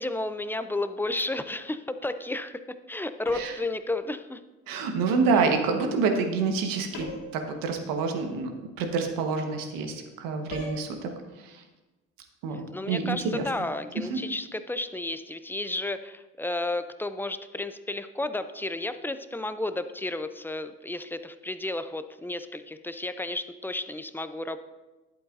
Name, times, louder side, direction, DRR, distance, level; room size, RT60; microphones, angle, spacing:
voice 1, 0.0-4.4 12.7-24.6, left 2 dB, 5° left, 11 dB, 0.4 m, -32 dB
sound 1, 3.2-3.7 6.9-7.4 10.5-10.8, left 1 dB, 75° left, 2.5 m, -38 dB
voice 2, 4.7-7.1 7.3-8.5 8.8-11.1 11.4-11.6 12.4-13.4, right 4 dB, 75° right, 4 dB, 1.3 m, -27 dB
11.0 x 8.1 x 2.6 m, 1.1 s
supercardioid pair, 75°, 34 cm